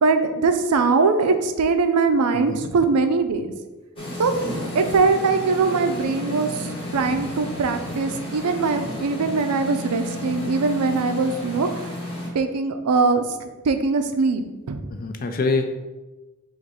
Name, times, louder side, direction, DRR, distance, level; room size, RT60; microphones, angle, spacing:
voice 1, 0.0-3.5 4.2-4.3 4.7-11.9 12.3-13.2 13.6-14.8, right 4 dB, 90° right, 8 dB, 0.5 m, -21 dB
voice 2, 2.3-2.7 14.9-15.7, left 3 dB, 40° left, 6 dB, 0.4 m, -25 dB
sound 1, 4.0-12.3, left 1 dB, 25° left, 1.0 m, -32 dB
3.9 x 2.5 x 4.7 m, 1.1 s
head